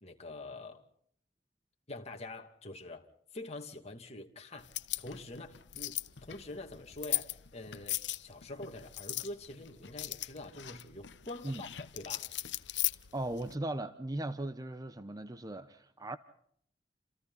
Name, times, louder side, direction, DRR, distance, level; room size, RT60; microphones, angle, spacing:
voice 1, 0.0-0.8 1.9-3.1 3.3-4.7 5.0-5.9 6.2-12.3, left 2 dB, 35° left, 2.5 m, -45 dB
sound 1, 4.6-13.5, left 15 dB, 80° left, 0.9 m, -39 dB
voice 2, 13.1-16.2, right 1 dB, 20° right, 0.9 m, -38 dB
29.0 x 28.0 x 4.0 m
head